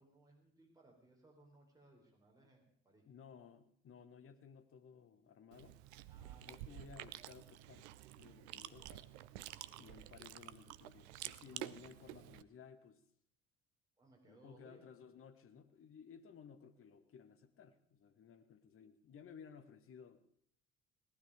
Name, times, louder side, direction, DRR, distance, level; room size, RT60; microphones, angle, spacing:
voice 1, 0.0-3.0 6.1-6.8 8.5-9.1 9.5-9.9 14.0-14.9, right 2 dB, 10° right, -1 dB, 4.2 m, -66 dB
voice 2, 3.1-5.8 6.4-9.0 9.7-13.0 14.2-20.2, left 7 dB, 35° left, 10 dB, 1.3 m, -58 dB
Chewing mastication, 5.5-12.4, right 14 dB, 65° right, 0.6 m, -50 dB
18.0 x 11.5 x 5.0 m, 0.62 s
figure-of-eight pair, 50°, 36 cm